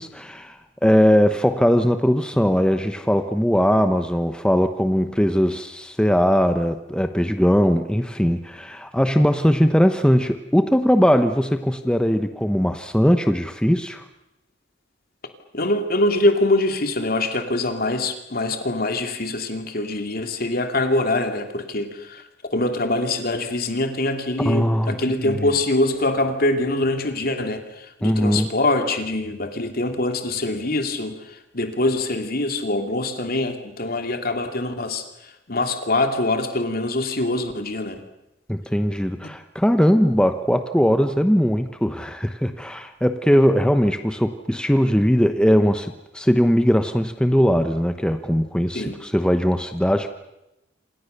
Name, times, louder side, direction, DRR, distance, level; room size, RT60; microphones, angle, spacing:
voice 1, 0.0-14.1 24.4-25.4 28.0-28.5 38.5-50.1, equal, 5° left, 8 dB, 1.0 m, -20 dB
voice 2, 15.5-22.2 22.5-37.9 39.2-39.3 48.7-48.9, left 2 dB, 50° left, 6 dB, 2.9 m, -24 dB
27.5 x 27.5 x 6.9 m, 0.93 s
head